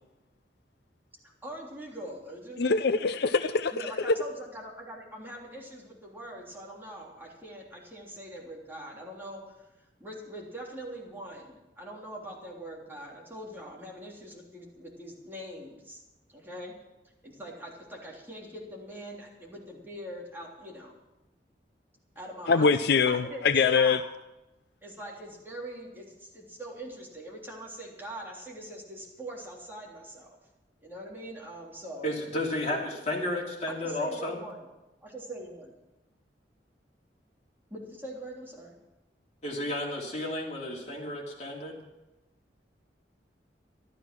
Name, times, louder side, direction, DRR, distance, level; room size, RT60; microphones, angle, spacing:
voice 1, 1.4-2.6 3.7-9.6 10.0-16.0 16.3-16.7 17.2-20.9 22.1-22.7 23.0-24.0 24.8-30.4 30.8-32.1 33.8-34.7 35.0-35.7 37.7-38.8, right 1 dB, 15° right, -3 dB, 3.4 m, -42 dB
voice 2, 2.6-4.1 22.5-24.0, left 5 dB, 65° left, 11 dB, 0.5 m, -24 dB
voice 3, 32.0-34.4 39.4-41.8, left 1 dB, 40° left, -2 dB, 3.2 m, -32 dB
13.5 x 12.5 x 6.2 m, 0.99 s
head